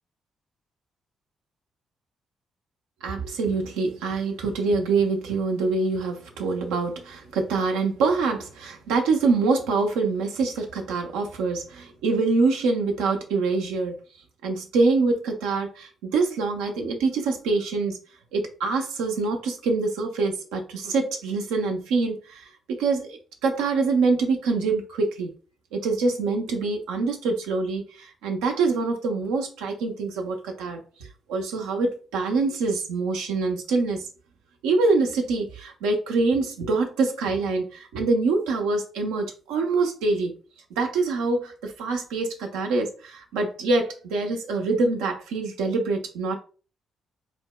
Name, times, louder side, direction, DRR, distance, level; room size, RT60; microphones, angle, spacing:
voice 1, 3.0-14.0 14.4-18.0 18.3-25.3 25.7-30.8 31.3-34.0 34.6-40.3 40.7-46.4, right 3 dB, 85° right, 0.5 m, -25 dB
4.2 x 2.1 x 2.2 m
supercardioid pair, 50°, 0 cm